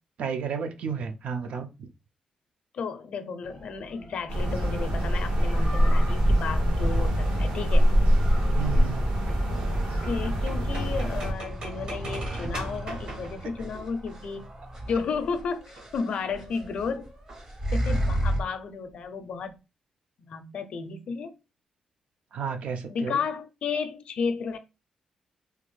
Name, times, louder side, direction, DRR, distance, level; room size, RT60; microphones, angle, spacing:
voice 1, 0.2-1.9 8.6-9.0 22.3-23.2, right 6 dB, 65° right, 0.5 m, -32 dB
voice 2, 2.7-7.9 10.1-14.5 14.8-17.1 17.7-19.6 20.2-21.3 22.9-24.6, left 5 dB, 55° left, 0.4 m, -33 dB
sound 1, 3.4-18.4, right 1 dB, 25° right, 0.6 m, -35 dB
sound 2, 4.3-11.3, equal, 85° right, 1.4 m, -24 dB
sound 3, 9.3-14.6 15.6-16.0 17.3-17.9 18.3-18.4 18.5-18.6 18.9-19.3, right 2 dB, 50° right, 1.0 m, -42 dB
3.4 x 2.4 x 3.1 m
wide cardioid pair, 170°, 2 cm